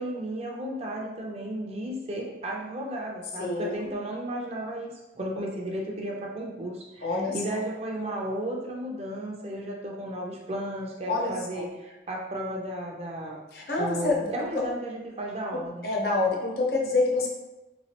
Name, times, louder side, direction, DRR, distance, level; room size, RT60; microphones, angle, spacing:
voice 1, 0.0-13.4 13.8-15.9, right 1 dB, 35° right, -1 dB, 0.5 m, -34 dB
voice 2, 3.4-3.9 7.0-7.6 11.1-11.7 13.5-14.6 15.5-17.3, left 3 dB, 55° left, -1 dB, 0.7 m, -27 dB
3.2 x 3.1 x 2.9 m, 1.0 s
head